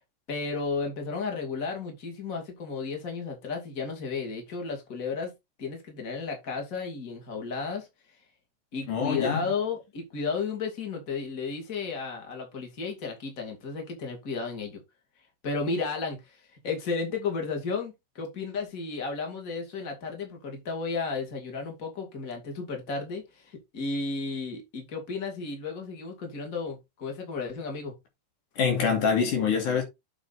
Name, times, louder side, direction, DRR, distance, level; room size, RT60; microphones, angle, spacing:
voice 1, 0.3-5.3 5.6-7.9 8.7-14.8 15.4-27.9, left 4 dB, 25° left, 2.7 m, -33 dB
voice 2, 8.9-9.5 28.6-29.8, left 6 dB, 75° left, 4.0 m, -25 dB
8.6 x 4.9 x 4.1 m
omnidirectional pair, 3.6 m